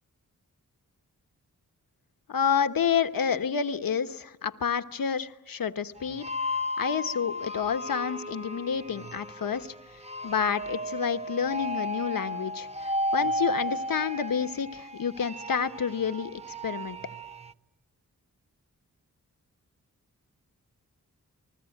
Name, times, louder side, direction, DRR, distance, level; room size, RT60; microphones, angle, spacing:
voice 1, 2.3-6.3 6.8-9.7 10.2-12.7 13.1-17.0, left 7 dB, 75° left, 10 dB, 1.2 m, -29 dB
sound 1, 6.0-17.5, equal, 20° right, 0.8 m, -34 dB
28.0 x 20.0 x 9.2 m, 1.0 s
cardioid pair, 60°, 34 cm